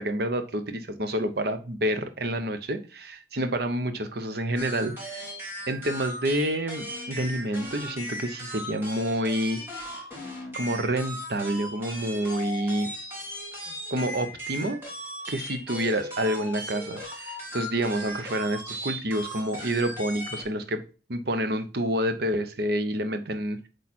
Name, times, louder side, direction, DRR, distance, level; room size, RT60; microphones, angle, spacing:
voice 1, 0.0-5.3 5.7-9.6 10.5-12.9 13.7-14.8 15.3-20.8 21.1-23.7, right 1 dB, 55° right, 8 dB, 0.9 m, -28 dB
sound 1, 4.6-20.4, equal, 10° right, 2.0 m, -38 dB
8.5 x 3.3 x 4.3 m, 0.34 s
head